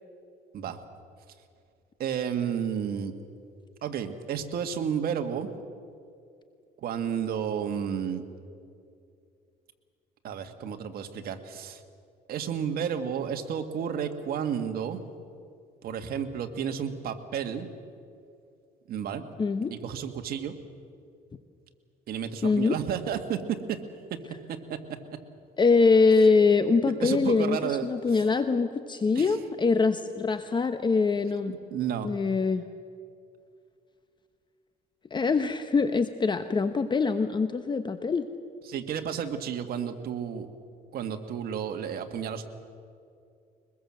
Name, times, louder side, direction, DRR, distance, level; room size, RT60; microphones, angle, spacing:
voice 1, 2.0-3.1 3.8-5.5 6.8-8.2 10.2-11.8 12.3-15.0 15.8-17.7 18.9-19.2 19.7-20.5 22.1-23.4 23.7-23.8 24.5-24.8 27.0-28.2 29.1-29.4 31.5-32.1 38.7-40.5 40.9-42.5, right 8 dB, 65° right, 6 dB, 1.9 m, -32 dB
voice 2, 19.4-19.7 22.4-22.8 25.6-31.5 32.0-32.7 35.1-38.3, left 4 dB, 25° left, 9 dB, 0.9 m, -23 dB
23.0 x 21.0 x 7.6 m, 2.4 s
cardioid pair, 110°, 17 cm